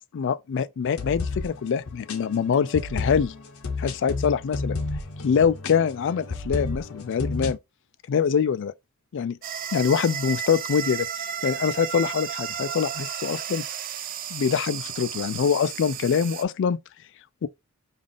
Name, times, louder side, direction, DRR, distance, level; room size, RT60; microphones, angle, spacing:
voice 1, 0.1-3.3 3.8-4.8 5.2-7.6 8.1-8.7 9.1-9.4 9.7-11.1 11.4-13.6 14.3-16.8 17.4-17.5, left 7 dB, 60° left, 0.3 m, -24 dB
sound 1, 0.8-7.5, left 3 dB, 80° left, 0.8 m, -32 dB
sound 2, 9.4-16.4, right 9 dB, 40° right, 0.4 m, -33 dB
3.5 x 2.4 x 3.7 m
head